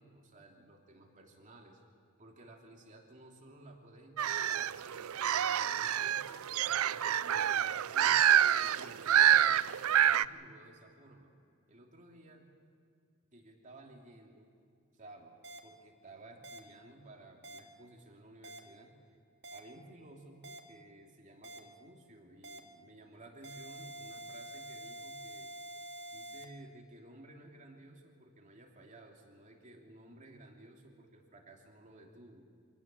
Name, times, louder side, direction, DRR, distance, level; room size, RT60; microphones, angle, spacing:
voice 1, 0.0-1.8 2.2-8.2 8.6-11.3 11.7-12.5 13.3-14.5 14.9-18.9 19.5-25.5 26.1-32.4, right 1 dB, 35° right, 0 dB, 2.9 m, -55 dB
sound 1, 4.2-10.2, right 10 dB, 85° right, 0.5 m, -27 dB
sound 2, 15.4-15.6 16.4-16.6 17.4-17.6 18.4-18.6 19.4-19.6 20.4-20.6 21.4-21.6 22.4-22.6 23.4-26.4, right 1 dB, 55° right, 2.0 m, -46 dB
25.5 x 18.0 x 7.5 m, 2.3 s
head